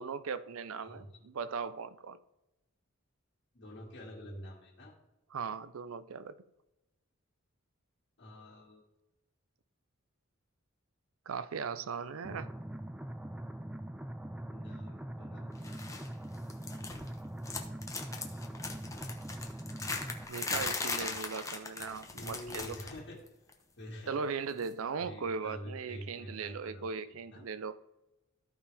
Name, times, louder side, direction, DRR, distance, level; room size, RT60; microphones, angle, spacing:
voice 1, 0.0-2.2 5.3-6.4 11.3-12.5 20.3-22.7 24.1-27.8, right 5 dB, 75° right, 0.5 m, -38 dB
voice 2, 0.8-1.1 3.5-4.9 8.2-8.8 14.5-16.1 22.1-23.3 23.8-24.2 25.0-27.4, equal, 55° left, 2.0 m, -47 dB
sound 1, 12.2-20.2, right 1 dB, 5° right, 0.3 m, -42 dB
sound 2, 15.6-16.1 16.3-17.2 17.4-23.0 23.3-23.5 24.6-24.7, left 3 dB, 15° left, 1.0 m, -39 dB
14.0 x 5.2 x 3.4 m
head